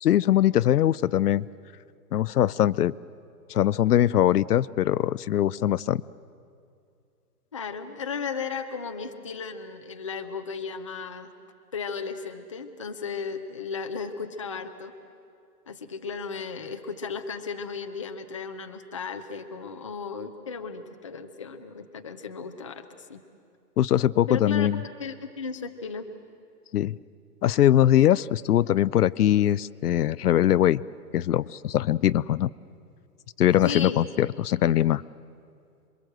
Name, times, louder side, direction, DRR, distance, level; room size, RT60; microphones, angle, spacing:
voice 1, 0.0-1.4 2.1-2.9 3.5-6.0 23.8-24.8 26.7-26.9 27.4-30.8 31.1-32.5 33.4-35.0, left 12 dB, 70° left, 18 dB, 0.6 m, -22 dB
voice 2, 7.5-11.3 11.7-14.9 15.7-23.2 24.3-24.7 25.0-26.1 33.6-34.1, left 5 dB, 20° left, 5 dB, 0.5 m, -35 dB
27.0 x 23.0 x 7.8 m, 2.4 s
hypercardioid pair, 165°, 48 cm